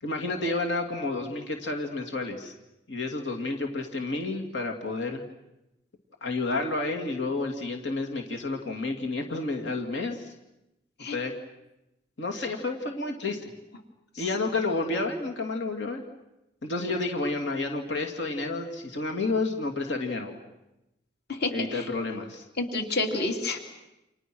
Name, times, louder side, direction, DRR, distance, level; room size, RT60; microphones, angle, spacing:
voice 1, 0.0-2.5 2.9-5.2 6.2-10.3 11.1-11.3 12.2-13.5 14.2-16.0 16.6-20.4 21.5-22.5, left 3 dB, 90° left, 3 dB, 2.6 m, -30 dB
voice 2, 21.3-21.9 22.6-23.6, left 2 dB, 60° left, 4 dB, 3.1 m, -29 dB
30.0 x 27.0 x 6.3 m, 0.92 s
head